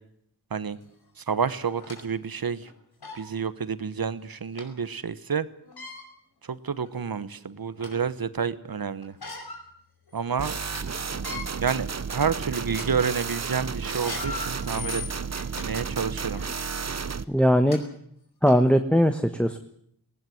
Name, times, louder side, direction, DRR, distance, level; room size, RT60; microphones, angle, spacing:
sound 1, 0.8-0.9 1.6-2.0 2.6-2.7 3.0-3.2 4.6-4.7 5.6-6.0 6.8-6.9 7.4-8.1 9.0-9.6 10.1-10.2 10.5-10.8 11.1-11.4 12.1-12.3 12.7-12.9 13.9-15.7 16.3-16.5 17.3-17.4 17.7-17.8 18.5-18.6, left 4 dB, 85° left, 5.2 m, -39 dB
voice 1, 1.2-2.7 3.1-5.5 6.5-9.2 10.1-10.6 11.6-15.0 15.6-16.4, right 6 dB, 70° right, 15 dB, 1.2 m, -29 dB
sound 2, 10.4-17.2, right 5 dB, 45° right, 0.9 m, -32 dB
voice 2, 17.3-17.8 18.4-19.6, equal, 5° left, 7 dB, 1.2 m, -20 dB
19.0 x 18.5 x 9.2 m, 0.67 s
wide cardioid pair, 80°, 37 cm